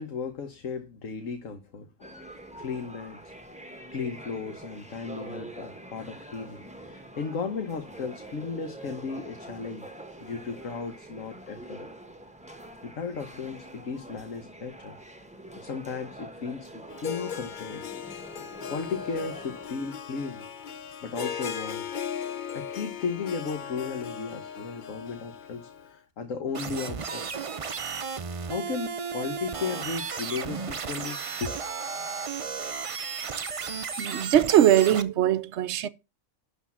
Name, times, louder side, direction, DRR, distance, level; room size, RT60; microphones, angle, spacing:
voice 1, 0.0-2.1 2.6-3.2 3.9-9.9 10.2-11.9 12.8-15.0 15.6-17.8 18.6-20.4 21.0-21.8 22.5-27.3 28.5-31.6, left 5 dB, 65° left, 1.5 m, -35 dB
sound 1, 2.0-19.7, right 1 dB, 5° right, 1.2 m, -45 dB
Harp, 16.9-25.9, left 8 dB, 50° left, 0.6 m, -38 dB
sound 2, 26.5-35.0, right 5 dB, 45° right, 0.4 m, -34 dB
voice 2, 34.0-35.9, right 11 dB, 60° right, 0.9 m, -21 dB
11.5 x 4.1 x 7.3 m
omnidirectional pair, 1.5 m